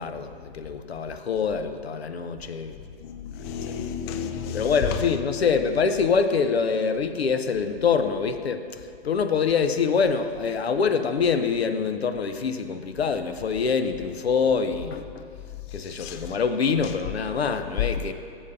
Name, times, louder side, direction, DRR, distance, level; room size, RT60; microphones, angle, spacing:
voice 1, 0.0-2.7 3.7-3.8 4.5-15.2 15.7-18.1, left 5 dB, 90° left, 9 dB, 0.6 m, -25 dB
voice 2, 3.0-5.0 16.0-16.4, left 7 dB, 25° left, 8 dB, 0.4 m, -32 dB
7.2 x 4.9 x 6.7 m, 2.3 s
hypercardioid pair, 125°, 30 cm